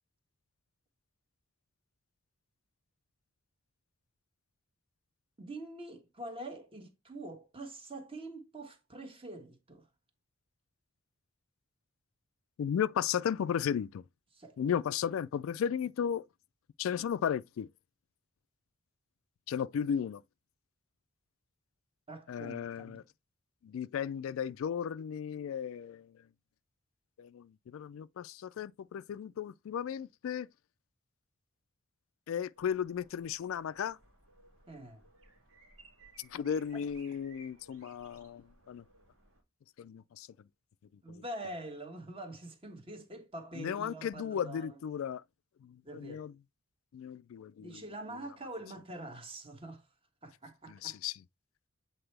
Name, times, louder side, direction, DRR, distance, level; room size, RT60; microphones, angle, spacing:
voice 1, 5.4-9.9 14.3-14.6 22.1-23.0 34.7-35.0 36.7-36.9 41.0-44.8 45.8-46.3 47.6-49.9 50.2-51.0, right 1 dB, 25° right, 1.3 m, -45 dB
voice 2, 12.6-14.0 14.6-16.2 16.8-17.7 19.5-20.2 22.3-23.0 23.6-26.1 27.2-30.5 32.3-34.0 36.3-38.8 39.8-40.3 41.1-41.2 43.6-45.2 45.6-46.3 46.9-47.8 50.7-51.1, left 8 dB, 75° left, 0.3 m, -35 dB
sound 1, 32.5-39.4, right 2 dB, 85° right, 2.6 m, -61 dB
7.9 x 4.3 x 3.3 m
head